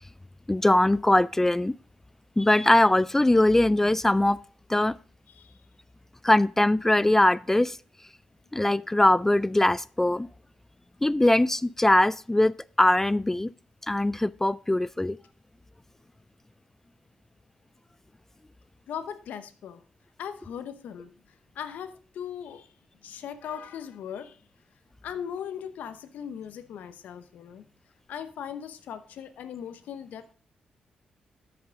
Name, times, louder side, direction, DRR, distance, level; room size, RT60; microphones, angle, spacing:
voice 1, 0.5-1.7 2.4-4.4 4.7-4.9 6.2-7.8 8.5-10.3 11.0-12.5 12.8-13.5 13.9-15.2, left 1 dB, 15° left, 0.3 m, -21 dB
voice 2, 18.9-19.8 20.2-21.1 21.5-22.7 23.0-24.4 25.0-27.6 28.1-30.2, left 8 dB, 80° left, 0.8 m, -38 dB
13.0 x 5.9 x 3.7 m
supercardioid pair, 60°, 3 cm